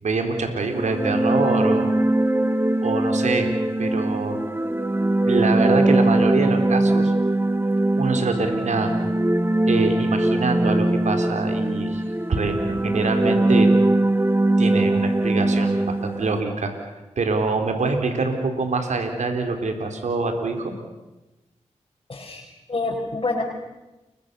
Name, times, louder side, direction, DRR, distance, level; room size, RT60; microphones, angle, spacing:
voice 1, 0.0-1.9 2.8-3.5 3.8-4.4 5.3-7.1 8.0-8.9 9.7-12.0 12.3-13.7 14.6-16.7 17.2-20.7, right 3 dB, 75° right, 5 dB, 4.0 m, -24 dB
sound 1, 0.7-16.4, right 1 dB, 20° right, 1.4 m, -21 dB
voice 2, 22.1-22.4 22.7-23.4, left 3 dB, 45° left, -3 dB, 6.3 m, -26 dB
30.0 x 23.5 x 7.0 m, 1.0 s
cardioid pair, 50°, 12 cm